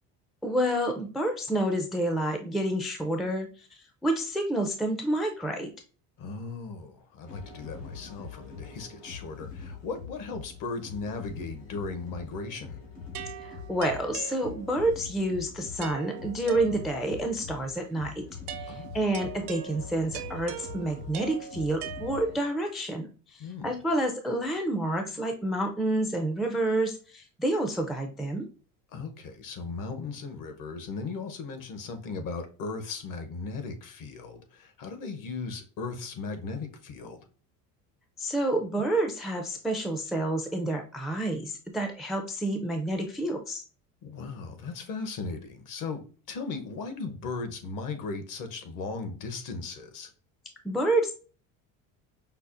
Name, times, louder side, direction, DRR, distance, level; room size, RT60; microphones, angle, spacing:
voice 1, 0.4-3.7 4.0-5.7 13.4-18.2 18.6-28.5 38.2-43.6 50.6-51.1, right 1 dB, ahead, 0.4 m, -29 dB
voice 2, 6.2-12.8 18.7-19.0 23.4-23.7 28.9-37.2 44.0-50.1, left 4 dB, 50° left, 0.9 m, -37 dB
sound 1, 7.3-22.4, left 5 dB, 85° left, 2.0 m, -44 dB
sound 2, 13.1-14.9 15.8-17.2 18.5-22.6, right 10 dB, 70° right, 0.6 m, -41 dB
5.5 x 2.1 x 2.5 m
supercardioid pair, 85°, 40 cm